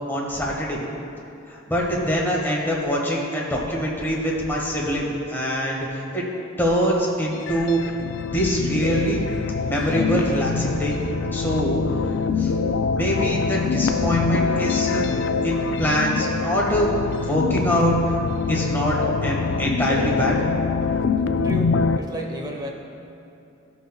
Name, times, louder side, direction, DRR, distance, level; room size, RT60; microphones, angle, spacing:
voice 1, 0.1-0.8 1.5-6.2 6.6-8.0 8.3-9.2 9.6-11.0 11.3-11.8 12.4-12.5 12.9-15.0 15.4-16.9 17.3-18.0 18.5-20.4, equal, 10° left, -4 dB, 1.5 m, -24 dB
sound 1, 7.3-22.0, left 4 dB, 65° left, 0.3 m, -24 dB
voice 2, 21.4-22.7, equal, 20° right, 0 dB, 1.0 m, -32 dB
16.5 x 5.9 x 2.3 m, 2.8 s
head